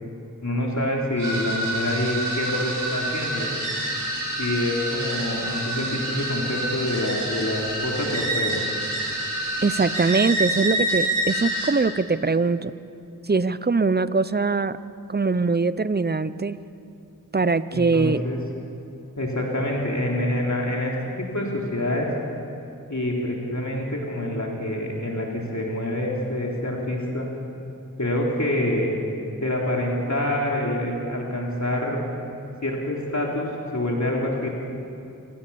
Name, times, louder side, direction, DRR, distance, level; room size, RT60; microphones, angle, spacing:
voice 1, 0.4-3.5 4.4-8.6 17.7-18.4 19.2-22.1 22.9-27.3 28.0-28.9 29.4-32.0 32.6-34.5, left 1 dB, 55° left, -2 dB, 3.5 m, -26 dB
sound 1, 1.2-11.7, right 1 dB, 60° right, 6.5 m, -27 dB
voice 2, 9.6-12.7 13.2-14.8 15.1-16.6 17.3-18.2, right 4 dB, 30° right, 15 dB, 0.7 m, -22 dB
26.5 x 18.5 x 7.1 m, 2.7 s
wide cardioid pair, 45°, 35 cm